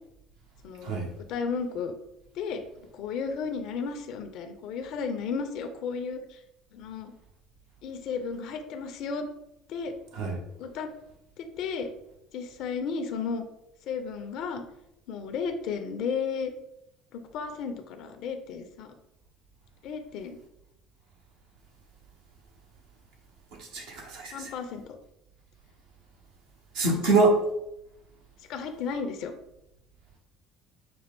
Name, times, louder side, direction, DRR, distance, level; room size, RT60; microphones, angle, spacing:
voice 1, 0.6-1.0 1.3-1.9 2.4-2.6 2.9-6.2 6.7-7.1 7.8-9.2 9.7-9.9 10.6-10.9 11.4-11.9 12.3-13.4 13.9-14.6 15.1-16.5 17.1-18.9 19.8-20.4 24.3-24.8 26.9-27.1 28.5-29.3, left 5 dB, 55° left, 7 dB, 0.5 m, -33 dB
voice 2, 23.6-24.5 26.7-27.4, right 3 dB, 65° right, 0 dB, 0.9 m, -25 dB
6.0 x 2.4 x 3.4 m, 0.84 s
figure-of-eight pair, 60°, 0 cm